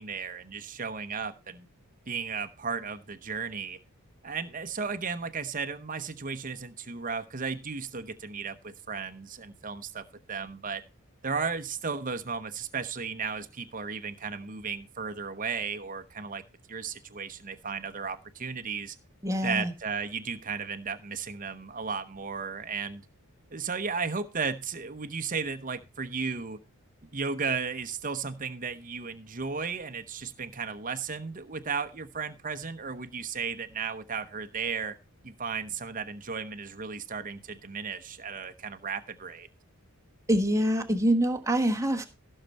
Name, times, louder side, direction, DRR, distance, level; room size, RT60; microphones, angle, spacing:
voice 1, 0.0-1.7 2.1-3.8 4.2-10.8 11.2-16.4 16.7-19.0 19.4-23.0 23.5-26.6 27.1-35.0 35.2-39.5, right 5 dB, 40° right, 9 dB, 0.9 m, -34 dB
voice 2, 19.2-19.7 40.3-42.0, right 1 dB, 15° right, 5 dB, 1.3 m, -25 dB
15.5 x 6.6 x 4.2 m, 0.28 s
head